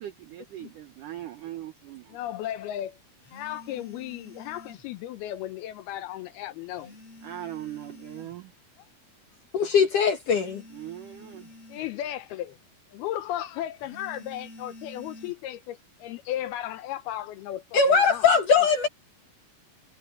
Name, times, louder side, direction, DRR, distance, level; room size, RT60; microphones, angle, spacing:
voice 1, 0.0-2.2 7.2-8.5 10.7-11.5, right 13 dB, 75° right, 1.9 m, -40 dB
voice 2, 2.1-3.0 3.3-6.9 11.7-12.6 12.9-18.2 18.6-18.7, left 12 dB, 80° left, 2.4 m, -35 dB
sound 1, 3.2-5.0 6.7-8.4 10.3-12.0 13.8-15.3, left 2 dB, 35° left, 8.1 m, -48 dB
voice 3, 9.5-10.6 17.7-18.9, left 5 dB, 55° left, 2.8 m, -21 dB
omnidirectional pair, 5.1 m